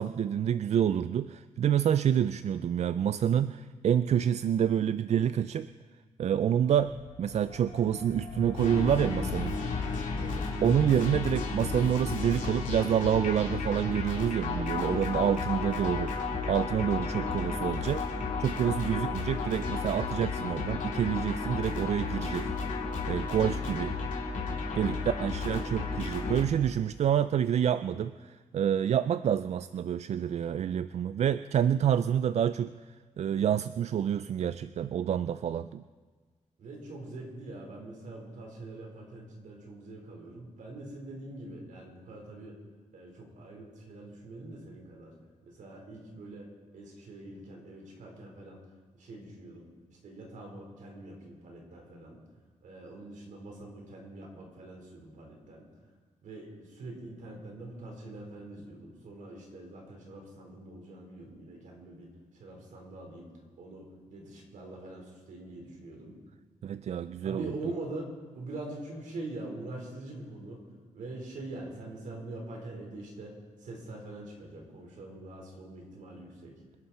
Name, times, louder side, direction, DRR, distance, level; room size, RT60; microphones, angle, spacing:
voice 1, 0.0-5.7 6.2-9.6 10.6-16.1 16.5-18.0 18.4-22.5 23.1-23.9 24.8-32.7 33.2-35.8 66.6-67.5, right 9 dB, 55° right, 13 dB, 0.4 m, -28 dB
sound 1, 6.8-17.0, left 5 dB, 65° left, 3.4 m, -42 dB
sound 2, 8.6-26.4, left 4 dB, 80° left, 3.0 m, -33 dB
voice 2, 24.7-25.3 25.6-25.8 36.6-42.6 42.9-45.1 45.4-46.5 46.7-48.6 49.0-49.6 50.0-52.2 52.6-55.6 56.2-62.1 62.3-63.3 63.6-66.2 67.2-70.6 70.9-76.5, right 2 dB, 75° right, 0 dB, 4.6 m, -44 dB
26.5 x 11.0 x 4.4 m, 1.4 s
wide cardioid pair, 135°, 13 cm